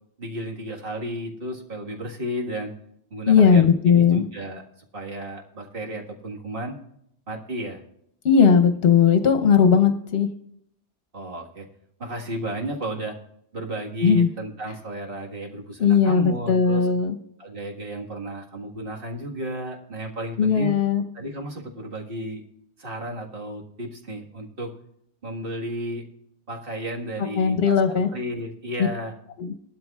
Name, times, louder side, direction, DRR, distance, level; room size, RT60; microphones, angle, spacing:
voice 1, 0.2-2.7 3.1-4.7 4.9-6.8 7.3-7.8 11.1-11.7 12.0-13.2 13.5-16.9 17.4-20.7 21.1-22.4 22.8-24.7 25.2-26.0 26.5-29.1, right 1 dB, 50° right, 0 dB, 1.8 m, -33 dB
voice 2, 3.3-4.2 8.2-10.3 14.0-14.3 15.8-17.1 20.4-21.0 27.4-28.1 29.4-29.5, left 6 dB, 60° left, 6 dB, 1.0 m, -18 dB
20.0 x 12.5 x 2.3 m, 0.74 s
omnidirectional pair, 1.2 m